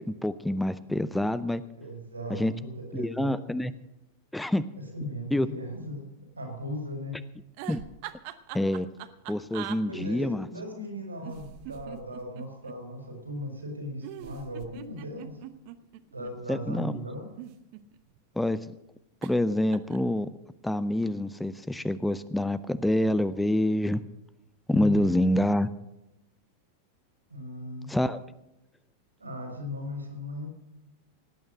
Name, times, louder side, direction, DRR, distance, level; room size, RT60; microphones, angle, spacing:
voice 1, 0.2-1.6 2.3-2.5 2.9-3.7 4.3-4.7 5.3-5.5 7.7-7.8 8.5-8.9 9.3-10.5 16.5-16.9 18.4-18.6 19.2-20.3 20.6-24.0 24.7-25.7 27.9-28.2, left 1 dB, 5° left, 15 dB, 0.5 m, -26 dB
voice 2, 1.8-3.4 4.8-6.1 6.4-7.2 9.9-15.4 16.1-17.2 24.7-25.1 27.3-27.9 29.2-30.5, equal, 80° right, 3 dB, 4.3 m, -37 dB
sound 1, 7.5-9.8 11.2-12.8 14.0-16.3 17.2-18.2 19.2-19.4 19.7-20.1, right 14 dB, 45° right, 0.8 m, -42 dB
18.0 x 8.8 x 6.4 m, 0.90 s
figure-of-eight pair, 90°, 0 cm